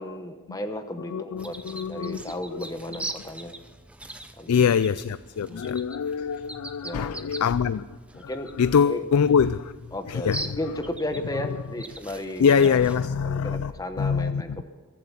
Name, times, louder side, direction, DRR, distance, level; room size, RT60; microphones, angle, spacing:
voice 1, 0.0-1.6 1.9-3.5 4.4-4.6 5.5-5.7 6.8-7.3 8.2-8.5 8.8-9.0 9.9-12.8 13.3-14.6, left 1 dB, 15° left, 1.0 m, -34 dB
voice 2, 1.1-2.2 2.6-2.7 4.5-8.0 8.2-8.3 8.6-9.8 10.1-10.6 12.4-13.7 14.0-14.6, left 6 dB, 80° left, 0.4 m, -24 dB
sound 1, 1.4-13.1, right 2 dB, 5° right, 0.6 m, -42 dB
23.0 x 7.8 x 7.3 m
head